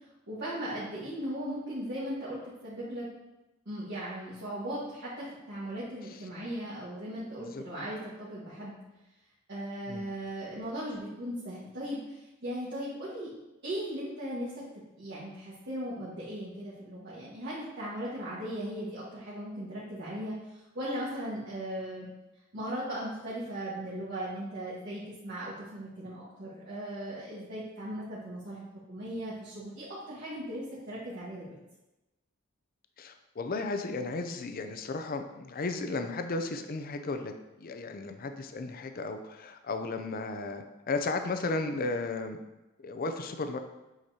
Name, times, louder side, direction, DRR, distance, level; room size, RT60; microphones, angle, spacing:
voice 1, 0.3-3.1 3.6-8.8 9.5-13.3 13.6-14.6 15.0-22.1 22.5-31.6, equal, 55° right, -9 dB, 1.5 m, -38 dB
voice 2, 33.0-37.3 37.6-42.4 42.8-43.6, left 3 dB, 45° left, 7 dB, 0.5 m, -34 dB
7.8 x 5.1 x 2.8 m, 1.0 s
head